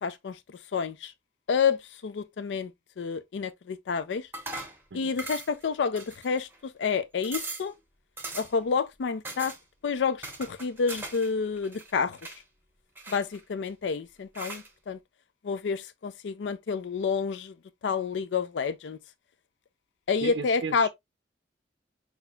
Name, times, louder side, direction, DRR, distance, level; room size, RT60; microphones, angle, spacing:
voice 1, 0.0-0.4 0.7-1.1 1.5-2.7 3.0-4.3 4.9-6.5 6.8-7.7 8.3-9.5 9.8-12.2 13.1-15.0 15.4-17.5 17.8-19.0 20.1-20.9, left 5 dB, 80° left, 0.4 m, -29 dB
sound 1, 4.3-4.8 5.2-5.6 6.0-6.6 6.9-7.0 7.2-7.7 8.2-8.6 9.2-9.6 10.2-11.3 11.6-12.4 13.0-13.7 14.3-14.7, right 2 dB, 15° right, 0.8 m, -39 dB
voice 2, 20.2-20.9, right 4 dB, 85° right, 0.5 m, -35 dB
5.8 x 2.8 x 2.2 m
head